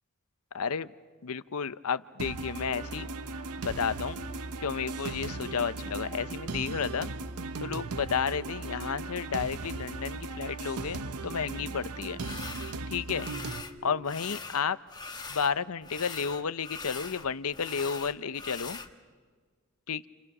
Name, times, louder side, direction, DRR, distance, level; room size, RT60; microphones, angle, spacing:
voice 1, 0.5-0.9 1.2-3.1 3.6-4.2 4.6-7.1 7.6-12.2 12.9-13.3 13.8-14.8 15.3-18.8 19.9-20.1, left 6 dB, 70° left, 14 dB, 0.7 m, -32 dB
sound 1, 2.2-13.6, right 3 dB, 85° right, 0.8 m, -37 dB
sound 2, 2.6-14.4, right 1 dB, 25° right, 1.3 m, -52 dB
sound 3, 12.2-12.8 13.1-13.8 14.0-15.5 15.8-18.9, left 4 dB, 20° left, 1.2 m, -42 dB
29.5 x 29.0 x 6.1 m, 1.5 s
head